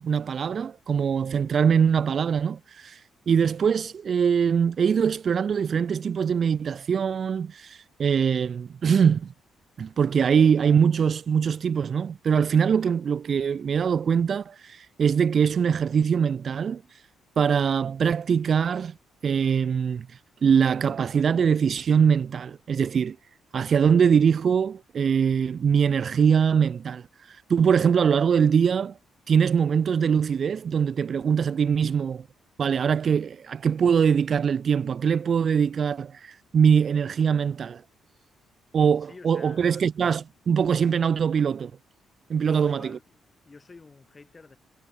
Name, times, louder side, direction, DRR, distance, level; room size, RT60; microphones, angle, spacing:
voice 1, 0.0-3.0 3.3-9.3 9.8-16.8 17.4-18.9 19.2-20.1 20.4-23.2 23.5-29.0 29.3-32.3 32.6-37.8 38.7-41.7 42.3-43.0, right 7 dB, 50° right, 0.3 m, -22 dB
voice 2, 39.0-39.9 42.4-44.6, left 3 dB, 25° left, 4.8 m, -49 dB
cardioid pair, 90°, 0 cm